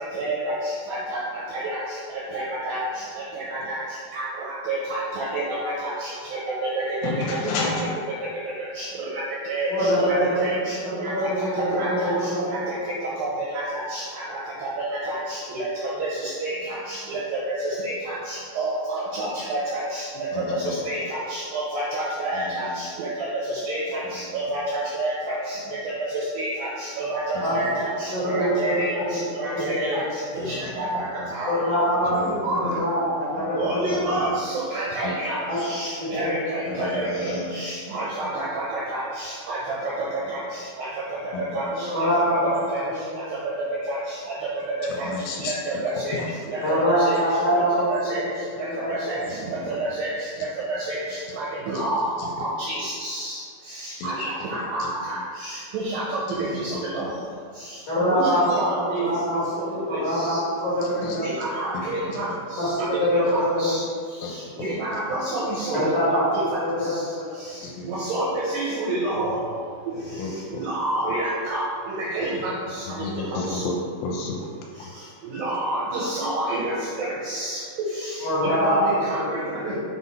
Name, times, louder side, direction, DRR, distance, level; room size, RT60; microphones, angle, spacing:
voice 1, 0.0-31.9 32.4-32.8 33.5-60.4 61.2-73.7 74.7-79.8, right 1 dB, 85° right, -5 dB, 2.1 m, -29 dB
voice 2, 7.0-7.9 20.3-20.7 22.3-22.4 30.4-31.3 32.1-32.8 33.4-34.3 35.0-35.2 36.7-37.6 41.3-41.6 44.9-45.5 46.1-46.3 52.2-52.3 53.9-54.1 54.8-54.9 56.3-56.5 61.0-61.2 61.7-62.2 64.2-64.4 64.7-64.8 67.5-68.0 70.2-70.6 72.9-75.0, left 3 dB, 80° left, 0 dB, 2.7 m, -32 dB
voice 3, 9.7-10.4 10.8-12.7 27.4-27.8 28.1-29.0 29.5-29.6 31.4-32.1 32.4-33.8 35.4-35.6 36.0-36.3 41.7-42.5 42.9-43.1 46.6-47.9 48.2-48.3 48.8-49.2 57.8-58.4 58.7-59.4 59.9-61.3 62.6-62.7 63.0-63.8 65.7-66.2 66.6-66.7 67.3-67.4 78.2-78.8 79.1-79.3, equal, 55° left, -11 dB, 1.7 m, -24 dB
6.9 x 4.1 x 4.1 m, 2.1 s
omnidirectional pair, 5.2 m